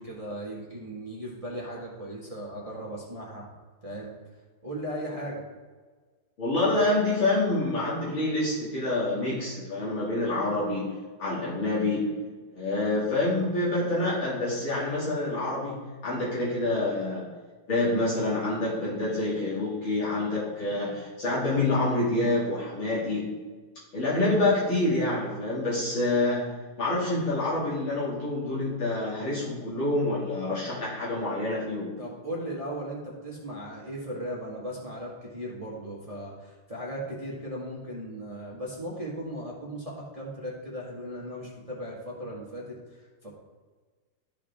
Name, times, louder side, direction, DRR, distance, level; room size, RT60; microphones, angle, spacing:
voice 1, 0.0-3.5 3.8-4.1 4.6-5.4 32.0-43.3, equal, 20° right, -4 dB, 1.4 m, -37 dB
voice 2, 6.4-10.9 11.2-12.1 12.5-17.2 17.7-23.3 23.9-26.5 26.8-31.9, left 2 dB, 65° left, -8 dB, 3.0 m, -27 dB
13.5 x 4.9 x 3.5 m, 1.4 s
omnidirectional pair, 2.3 m